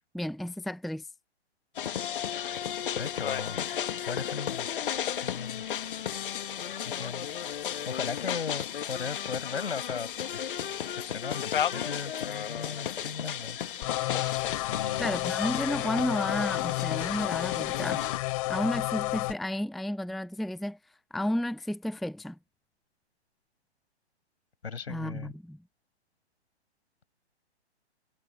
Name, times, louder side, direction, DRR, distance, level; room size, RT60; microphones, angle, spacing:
voice 1, 0.1-1.1 15.0-18.0 18.5-20.8 21.1-22.4 24.9-25.6, left 1 dB, ahead, 0.9 m, -32 dB
sound 1, 1.8-18.2, left 9 dB, 50° left, 1.6 m, -34 dB
voice 2, 3.0-3.6 4.0-4.7 5.2-5.6 6.8-10.4 10.9-13.6 14.7-15.1 24.6-25.3, left 5 dB, 65° left, 6.0 m, -37 dB
sound 2, 13.8-19.3, left 21 dB, 30° left, 4.6 m, -31 dB
figure-of-eight pair, 125°, 34 cm